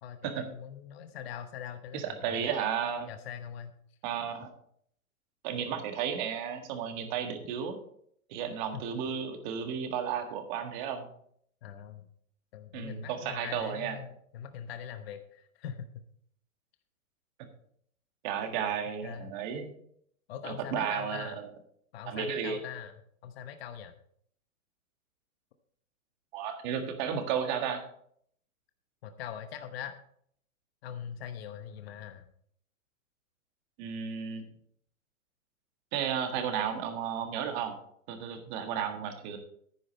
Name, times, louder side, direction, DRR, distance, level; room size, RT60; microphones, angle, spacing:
voice 1, 0.0-2.5 3.1-3.7 8.7-8.9 11.6-12.1 12.5-16.0 19.0-19.3 20.3-21.4 21.9-22.9 23.2-23.9 29.0-30.0 30.8-32.3, left 9 dB, 45° left, 8 dB, 1.0 m, -42 dB
voice 2, 1.9-3.1 4.0-4.5 5.4-7.8 8.3-11.1 12.7-14.0 18.2-19.7 20.4-21.5 22.1-22.6 26.3-27.8 33.8-34.4 35.9-37.7 38.1-39.4, right 8 dB, 35° right, 6 dB, 1.7 m, -33 dB
10.0 x 9.7 x 4.1 m, 0.65 s
hypercardioid pair, 150°, 42 cm